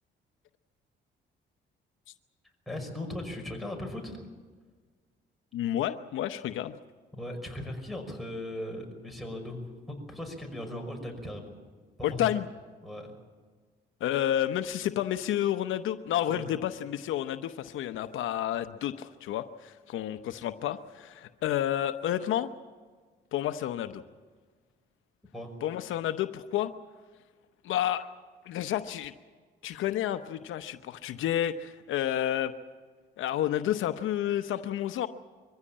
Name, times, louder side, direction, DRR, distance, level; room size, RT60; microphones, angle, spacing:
voice 1, 2.7-4.3 7.1-9.6 9.9-11.5 12.0-12.3 12.8-13.1 16.3-16.4 25.3-25.5, left 1 dB, ahead, 1 dB, 5.7 m, -38 dB
voice 2, 5.5-6.7 12.0-12.5 14.0-22.5 23.3-24.0 25.6-26.7 27.6-28.1 28.4-29.1 29.6-32.5 33.2-35.1, left 11 dB, 80° left, 10 dB, 0.9 m, -30 dB
23.5 x 15.5 x 8.7 m, 1.5 s
cardioid pair, 90°, 20 cm